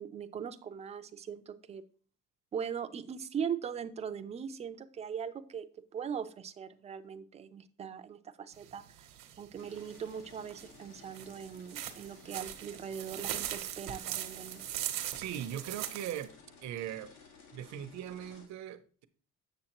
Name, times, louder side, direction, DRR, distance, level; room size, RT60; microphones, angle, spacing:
voice 1, 0.0-1.8 2.5-5.7 5.9-9.1 9.4-14.6, right 7 dB, 20° right, 0.4 m, -40 dB
sound 1, 8.5-16.2, right 12 dB, 80° right, 1.0 m, -40 dB
sound 2, 9.6-18.5, left 4 dB, 90° left, 1.9 m, -57 dB
voice 2, 15.2-16.3 16.6-17.1 17.5-19.1, right 11 dB, 60° right, 0.7 m, -40 dB
7.7 x 7.0 x 3.0 m
cardioid pair, 165°, 32 cm